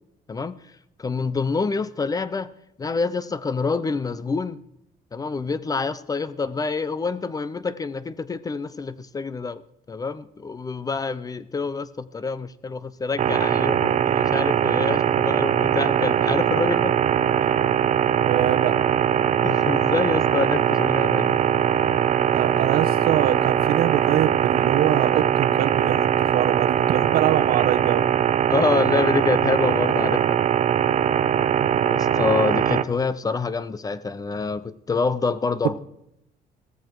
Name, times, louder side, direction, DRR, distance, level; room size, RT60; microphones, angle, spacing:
voice 1, 1.0-2.5 2.8-4.6 5.1-9.6 9.9-16.9 19.4-21.4 28.5-30.4 31.9-35.8, left 4 dB, 20° left, 16 dB, 0.6 m, -26 dB
sound 1, 13.2-32.8, right 9 dB, 45° right, 0.7 m, -21 dB
voice 2, 18.2-18.8 22.3-28.0 31.6-32.0, right 11 dB, 70° right, 14 dB, 0.9 m, -24 dB
16.5 x 14.5 x 4.7 m, 0.82 s
cardioid pair, 135°, 17 cm